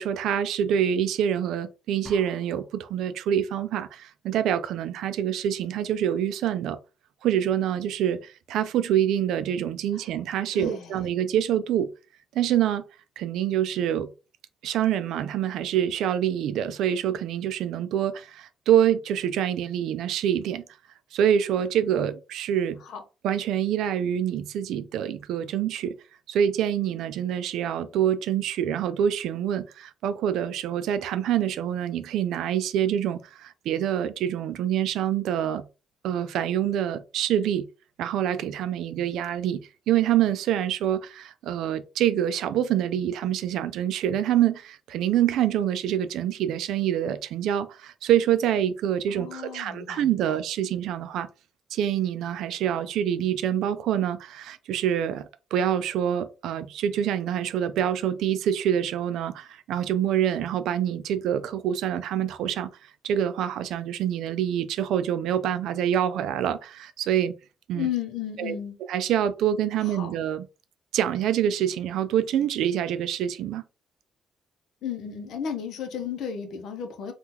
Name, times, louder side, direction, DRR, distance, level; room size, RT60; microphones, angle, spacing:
voice 1, 0.0-6.8 7.2-11.9 12.3-12.8 13.2-14.1 14.6-20.6 21.1-22.8 23.2-26.0 26.3-35.6 36.0-37.7 38.0-51.3 51.7-62.7 63.0-67.3 67.7-67.9 68.4-68.6 68.9-70.5 70.9-73.6, right 10 dB, 85° right, 0.4 m, -26 dB
sound 1, 2.1-3.0, equal, 5° right, 0.9 m, -47 dB
voice 2, 10.5-10.9 22.9-23.0 49.1-50.3 67.7-68.8 69.8-70.1 74.8-77.1, left 8 dB, 75° left, 0.7 m, -34 dB
3.7 x 2.3 x 2.8 m
cardioid pair, 90°, 0 cm